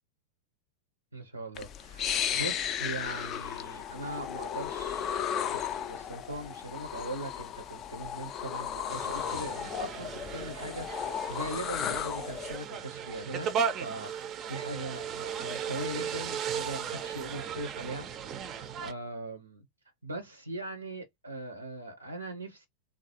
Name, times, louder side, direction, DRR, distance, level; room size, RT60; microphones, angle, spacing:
voice 1, 1.1-5.2 5.5-13.5 13.8-18.1 18.6-19.6 20.0-22.7, right 1 dB, 85° right, 0.5 m, -40 dB
Wind with the mouth, 1.6-12.6, left 9 dB, 30° left, 0.4 m, -35 dB
sound 1, 8.9-18.9, right 7 dB, 30° right, 0.4 m, -36 dB
3.2 x 2.2 x 2.8 m
figure-of-eight pair, 90°, 0 cm